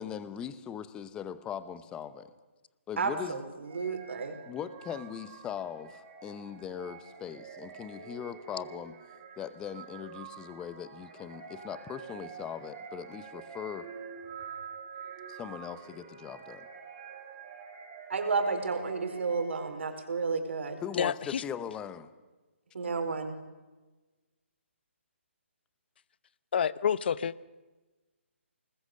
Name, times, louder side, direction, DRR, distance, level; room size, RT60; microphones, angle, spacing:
voice 1, 0.0-2.3 2.9-3.4 4.5-9.0 9.4-13.9 15.3-16.7 20.8-22.1, left 8 dB, 10° left, 13 dB, 0.9 m, -40 dB
voice 2, 3.0-4.4 18.1-20.8 22.7-23.4, right 4 dB, 65° right, 6 dB, 4.5 m, -32 dB
sound 1, 3.7-19.9, right 6 dB, 30° right, 6.2 m, -47 dB
voice 3, 20.9-21.4 26.5-27.3, left 8 dB, 50° left, 18 dB, 0.8 m, -28 dB
27.0 x 20.5 x 6.8 m, 1.2 s
hypercardioid pair, 155°, 7 cm